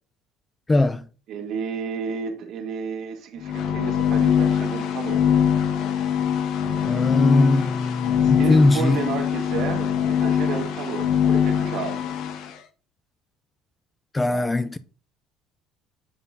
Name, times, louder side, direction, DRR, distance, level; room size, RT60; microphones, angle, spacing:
voice 1, 0.7-1.0 6.9-9.0 14.1-14.8, left 2 dB, 10° left, 0.3 m, -20 dB
voice 2, 1.3-5.2 8.2-12.0 14.3-14.5, right 6 dB, 50° right, 1.8 m, -31 dB
sound 1, 3.4-12.5, left 8 dB, 60° left, 1.2 m, -23 dB
9.5 x 5.5 x 2.8 m
cardioid pair, 165°, 0 cm